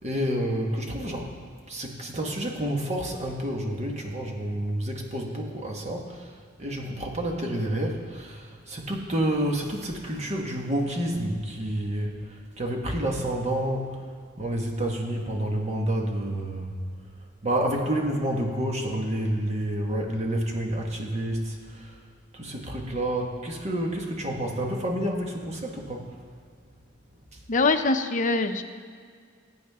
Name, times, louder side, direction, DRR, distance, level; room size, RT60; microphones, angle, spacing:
voice 1, 0.0-1.3 1.7-6.3 6.6-12.2 12.6-14.0 14.4-16.7 17.4-21.9 22.3-26.0, right 1 dB, 35° right, 1 dB, 1.7 m, -29 dB
voice 2, 27.5-28.6, left 3 dB, 40° left, 6 dB, 0.7 m, -23 dB
21.0 x 8.7 x 3.7 m, 2.1 s
head